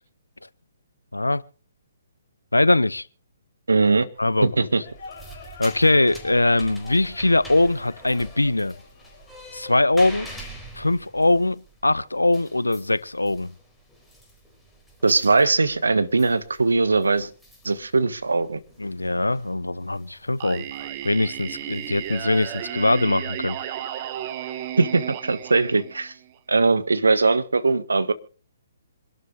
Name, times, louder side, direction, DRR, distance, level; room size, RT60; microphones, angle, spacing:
voice 1, 1.1-1.4 2.5-3.1 4.2-4.7 5.6-8.7 9.5-10.3 10.8-13.5 18.8-20.6 21.0-23.6, left 2 dB, 85° left, 0.7 m, -21 dB
voice 2, 3.7-4.1 4.4-4.8 15.0-17.3 17.6-18.6 24.8-26.1 26.5-28.1, right 3 dB, 75° right, 1.5 m, -20 dB
sound 1, 4.2-10.0, left 3 dB, 45° left, 4.4 m, -45 dB
sound 2, 4.9-23.0, equal, 5° left, 4.4 m, -46 dB
Singing, 20.4-26.3, right 11 dB, 35° right, 1.6 m, -34 dB
26.5 x 12.0 x 2.5 m
figure-of-eight pair, 130°, 0 cm